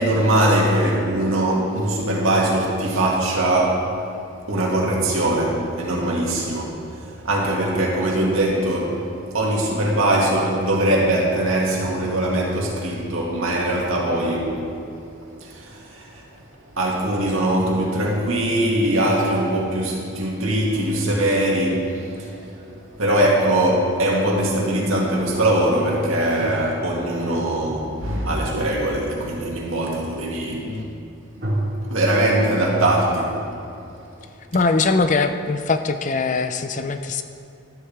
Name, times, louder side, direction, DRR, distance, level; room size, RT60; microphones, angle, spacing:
voice 1, 0.0-3.9 4.5-6.7 7.0-9.1 9.3-14.6 15.4-16.2 16.8-22.3 23.0-30.7 31.4-31.5 31.9-33.4, right 1 dB, 80° right, -3 dB, 2.3 m, -21 dB
sound 1, 21.0-24.7 26.4-27.5 31.4-32.1, right 1 dB, 50° right, 2.3 m, -32 dB
voice 2, 34.5-37.2, left 3 dB, 35° left, 8 dB, 0.5 m, -21 dB
13.0 x 13.0 x 3.6 m, 2.5 s
head